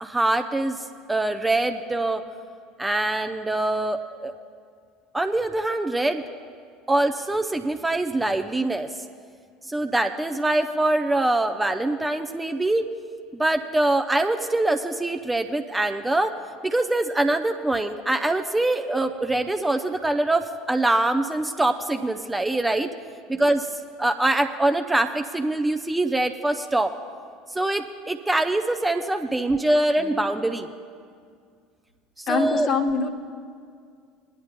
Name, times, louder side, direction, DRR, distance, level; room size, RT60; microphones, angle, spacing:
voice 1, 0.0-2.2 2.8-4.3 5.1-6.2 6.9-8.9 9.7-12.9 13.3-16.3 16.6-22.9 23.3-23.7 24.0-26.9 27.5-30.7 32.2-32.7, right 2 dB, 10° right, 6 dB, 0.6 m, -24 dB
voice 2, 32.3-33.1, left 4 dB, 45° left, 5 dB, 1.1 m, -23 dB
21.0 x 10.5 x 2.2 m, 2.2 s
figure-of-eight pair, 65°, 0 cm